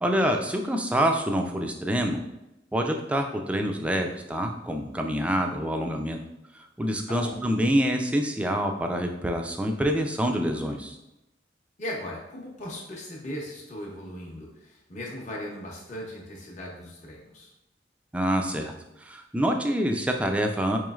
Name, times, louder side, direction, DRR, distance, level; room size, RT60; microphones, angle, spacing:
voice 1, 0.0-2.2 2.7-6.2 6.5-11.0 18.1-18.7 19.0-20.8, equal, 5° right, 3 dB, 0.3 m, -26 dB
voice 2, 7.1-7.4 11.8-17.5, left 1 dB, 40° left, -3 dB, 0.7 m, -38 dB
4.7 x 3.0 x 2.3 m, 0.91 s
head